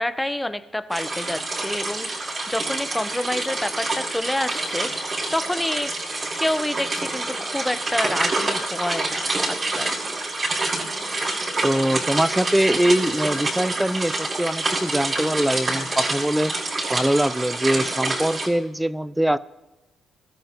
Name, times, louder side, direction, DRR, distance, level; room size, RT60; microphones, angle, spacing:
voice 1, 0.0-5.9 6.4-10.0, left 1 dB, 10° left, 11 dB, 1.1 m, -28 dB
sound 1, 0.9-18.5, right 2 dB, 40° right, 5.2 m, -27 dB
voice 2, 11.6-16.5 16.9-19.4, right 1 dB, 5° right, 16 dB, 0.7 m, -22 dB
23.5 x 13.0 x 3.2 m, 1.1 s
hypercardioid pair, 50°, 0 cm